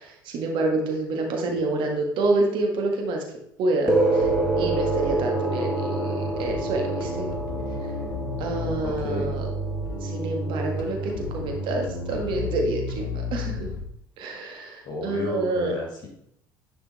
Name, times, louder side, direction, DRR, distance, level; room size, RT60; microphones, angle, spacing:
voice 1, 0.0-3.2 3.6-4.3 4.6-7.3 8.4-9.5 10.0-13.7 14.2-15.7, right 2 dB, 50° right, 2 dB, 1.6 m, -28 dB
sound 1, 3.9-12.6, right 2 dB, 5° right, 1.6 m, -28 dB
Bass guitar, 4.2-13.8, left 1 dB, 65° left, 1.1 m, -32 dB
voice 2, 8.8-9.4 14.8-16.1, left 1 dB, 45° left, 0 dB, 1.9 m, -32 dB
10.0 x 4.4 x 4.1 m, 0.73 s
figure-of-eight pair, 60°, 11 cm